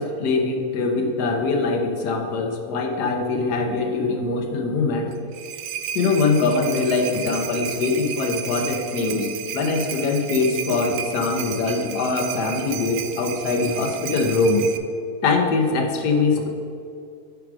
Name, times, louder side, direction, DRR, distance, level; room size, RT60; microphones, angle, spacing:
voice 1, 0.0-5.1 5.9-14.7 15.2-16.5, left 3 dB, 90° left, 3 dB, 1.5 m, -22 dB
sound 1, 5.1-14.8, right 10 dB, 80° right, 1.1 m, -33 dB
8.6 x 4.8 x 6.1 m, 2.4 s
omnidirectional pair, 1.7 m